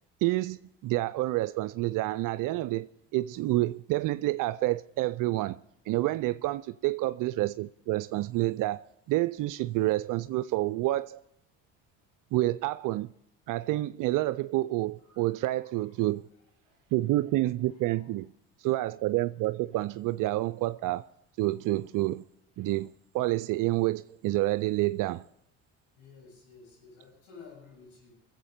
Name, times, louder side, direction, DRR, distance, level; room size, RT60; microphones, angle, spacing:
voice 1, 0.2-2.9 3.1-8.8 9.1-11.2 12.3-13.1 13.5-16.2 16.9-18.3 18.6-21.1 21.4-22.2 22.6-25.2, right 17 dB, 60° right, 0.5 m, -28 dB
voice 2, 15.0-15.8 16.6-16.8 17.9-18.1 25.9-28.1, left 5 dB, 85° left, 7.4 m, -53 dB
22.5 x 7.9 x 5.1 m
hypercardioid pair, 65°, 37 cm